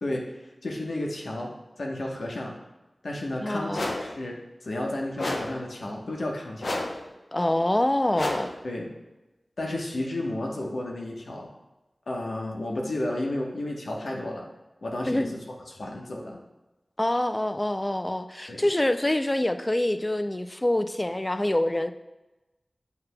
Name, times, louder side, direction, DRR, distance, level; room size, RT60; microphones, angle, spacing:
voice 1, 0.0-1.5 1.8-2.6 3.0-6.8 8.6-8.9 9.6-11.5 12.1-14.5 14.8-16.4 18.5-18.7, left 1 dB, 85° left, -1 dB, 1.0 m, -32 dB
voice 2, 3.4-3.9 7.3-8.5 15.1-15.3 17.0-21.9, left 1 dB, 25° left, 9 dB, 0.4 m, -25 dB
sound 1, 3.7-4.2 5.2-5.7 6.6-7.1 8.1-8.6, left 2 dB, 70° left, 0.7 m, -30 dB
8.0 x 5.7 x 2.2 m, 1.0 s
wide cardioid pair, 60°, 0 cm